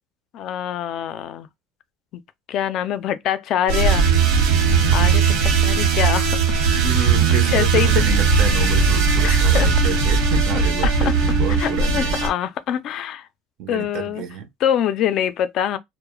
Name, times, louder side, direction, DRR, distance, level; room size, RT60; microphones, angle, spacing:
voice 1, 0.3-1.5 2.5-4.1 4.9-6.6 6.9-8.0 9.2-9.7 10.5-11.2 11.6-13.3 13.7-14.2 14.6-15.8, left 10 dB, 45° left, 0.3 m, -25 dB
sound 1, 3.7-12.3, right 5 dB, 85° right, 1.0 m, -18 dB
voice 2, 4.7-5.5 6.8-12.2 13.6-14.5, right 8 dB, 55° right, 0.5 m, -30 dB
2.3 x 2.0 x 2.9 m
cardioid pair, 165°, 0 cm